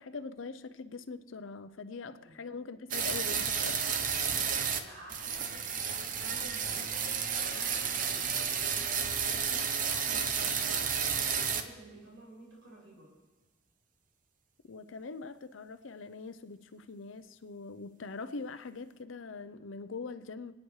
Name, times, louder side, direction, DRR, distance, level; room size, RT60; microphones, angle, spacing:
voice 1, 0.0-3.9 14.7-20.5, left 4 dB, 80° left, 0.6 m, -43 dB
voice 2, 1.9-2.4 4.2-10.8 11.3-13.1, right 1 dB, 75° right, 5.5 m, -53 dB
sound 1, 2.9-4.8 5.1-11.6, right 6 dB, 40° right, 0.8 m, -31 dB
25.0 x 9.6 x 3.2 m
head